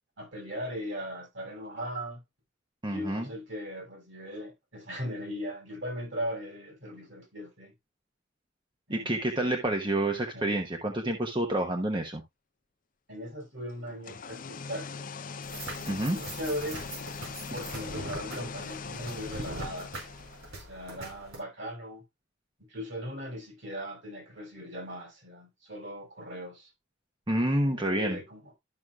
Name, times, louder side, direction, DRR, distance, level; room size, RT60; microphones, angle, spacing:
voice 1, 0.2-2.2 2.9-7.7 8.9-9.6 10.3-10.6 13.1-15.1 15.5-16.8 17.5-19.9 20.7-22.0 22.7-26.7 27.7-28.5, equal, 60° right, 5.7 m, -39 dB
voice 2, 2.8-3.3 8.9-12.2 15.9-16.2 27.3-28.2, right 1 dB, 25° right, 1.0 m, -28 dB
sound 1, 13.9-20.6, left 5 dB, 40° left, 0.5 m, -41 dB
sound 2, 15.4-21.4, right 1 dB, 90° right, 5.0 m, -42 dB
13.0 x 6.2 x 2.4 m
head